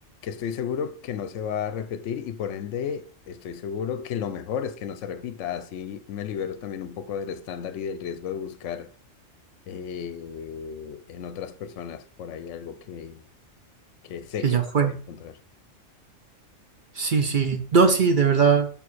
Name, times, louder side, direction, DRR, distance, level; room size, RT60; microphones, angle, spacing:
voice 1, 0.2-8.9 9.7-13.2 14.0-15.4, left 7 dB, 70° left, 0.9 m, -33 dB
voice 2, 14.4-14.9 17.0-18.7, right 5 dB, 45° right, 0.8 m, -20 dB
5.4 x 4.7 x 4.1 m
omnidirectional pair, 1.4 m